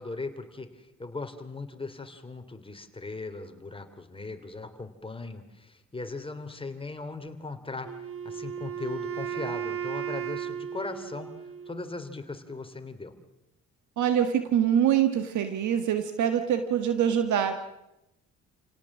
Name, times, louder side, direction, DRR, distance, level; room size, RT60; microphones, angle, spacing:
voice 1, 0.0-7.9 8.2-13.1, left 3 dB, 20° left, 7 dB, 3.1 m, -38 dB
Wind instrument woodwind instrument, 7.8-11.9, right 8 dB, 45° right, 1.6 m, -35 dB
voice 2, 14.0-17.6, right 9 dB, 75° right, 8 dB, 1.7 m, -24 dB
29.5 x 17.5 x 7.4 m, 0.91 s
cardioid pair, 90°, 30 cm